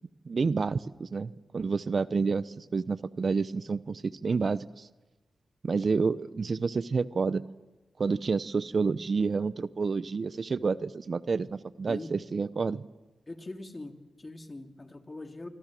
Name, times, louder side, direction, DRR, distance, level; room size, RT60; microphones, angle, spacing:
voice 1, 0.3-4.9 5.6-7.4 8.0-12.8, right 4 dB, 55° right, 16 dB, 0.8 m, -29 dB
voice 2, 13.3-15.5, left 2 dB, 30° left, 4 dB, 3.1 m, -42 dB
25.5 x 25.5 x 7.6 m, 1.1 s
cardioid pair, 50°, 0 cm